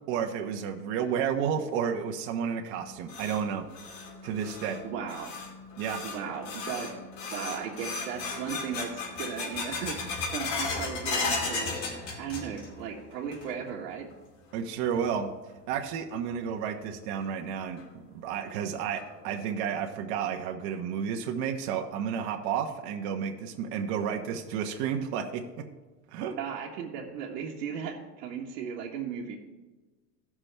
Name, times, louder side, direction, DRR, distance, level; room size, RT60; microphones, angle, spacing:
voice 1, 0.1-3.7 4.2-4.8 5.8-6.0 14.5-15.3 15.7-17.8 18.1-25.6 26.1-26.4, right 7 dB, 55° right, 3 dB, 1.1 m, -31 dB
sound 1, 2.7-12.8 13.1-13.7 14.1-14.2 14.9-15.0 16.7-16.8 17.2-17.3 17.8-17.9 18.4-18.5 19.0-19.4, left 3 dB, 85° left, 2.4 m, -35 dB
voice 2, 4.8-5.4 6.0-6.9 7.3-10.0 10.3-14.1 26.4-29.4, right 7 dB, 70° right, -4 dB, 1.5 m, -36 dB
16.0 x 6.1 x 3.4 m, 1.2 s
supercardioid pair, 120°, 49 cm